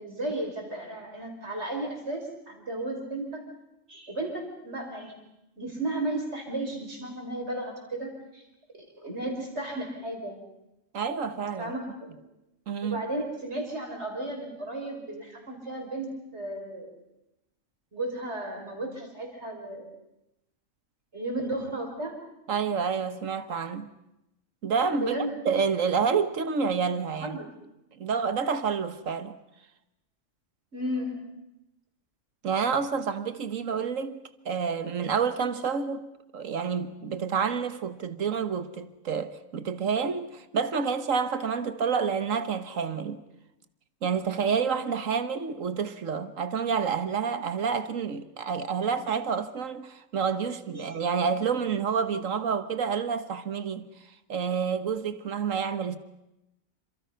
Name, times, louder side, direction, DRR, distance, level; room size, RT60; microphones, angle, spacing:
voice 1, 0.0-3.4 3.9-5.1 5.6-8.4 8.7-10.4 11.6-12.1 12.8-16.9 17.9-19.9 21.1-22.2 24.9-25.4 27.2-27.5 30.7-31.2 50.7-50.9, right 1 dB, 55° right, 5.7 m, -34 dB
voice 2, 10.9-11.7 12.7-13.0 22.5-23.9 24.6-25.2 25.4-27.4 27.9-29.4 32.4-36.1 36.3-43.2 44.0-53.9 54.3-56.0, right 6 dB, 75° right, 1.7 m, -28 dB
28.5 x 26.5 x 5.7 m
omnidirectional pair, 1.4 m